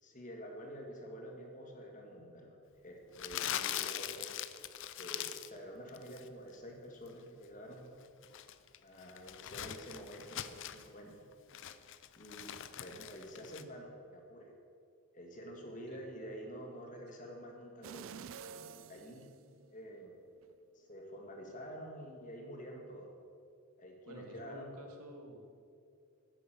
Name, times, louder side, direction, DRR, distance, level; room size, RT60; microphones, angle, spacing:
voice 1, 0.0-2.5 2.8-4.4 5.0-7.9 8.8-11.3 12.2-12.5 12.8-14.5 15.1-19.3 19.7-20.1 20.7-23.1 23.8-24.7, equal, 35° left, 1 dB, 1.7 m, -48 dB
Crumpling crinkling, 3.2-5.6 5.9-6.3 8.0-10.9 11.3-13.6, left 11 dB, 55° left, 0.5 m, -42 dB
sound 1, 17.8-20.0 20.4-20.5, right 7 dB, 60° right, 0.4 m, -49 dB
voice 2, 24.0-25.4, right 1 dB, 90° right, 3 dB, 1.8 m, -50 dB
9.6 x 9.3 x 6.7 m, 2.4 s
head